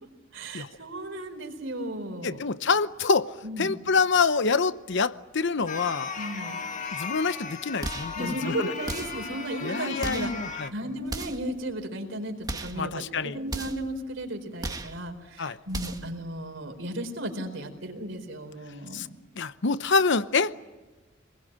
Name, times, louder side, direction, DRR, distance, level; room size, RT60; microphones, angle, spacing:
voice 1, 0.3-2.4 3.4-3.7 6.2-6.6 8.1-10.3 10.7-19.1, right 1 dB, 70° right, 4.5 m, -35 dB
voice 2, 2.2-6.1 6.9-8.7 9.6-10.7 12.8-13.4 15.4-15.6 18.9-19.1 19.4-20.6, left 4 dB, 65° left, 0.8 m, -26 dB
sound 1, 5.7-10.7, left 5 dB, 40° left, 1.7 m, -36 dB
sound 2, 7.8-8.2 8.9-9.3 10.0-10.4 11.1-11.5 12.4-12.8 13.5-13.9 14.6-15.0 15.7-16.1, right 2 dB, 20° right, 1.5 m, -35 dB
27.5 x 21.0 x 8.9 m
head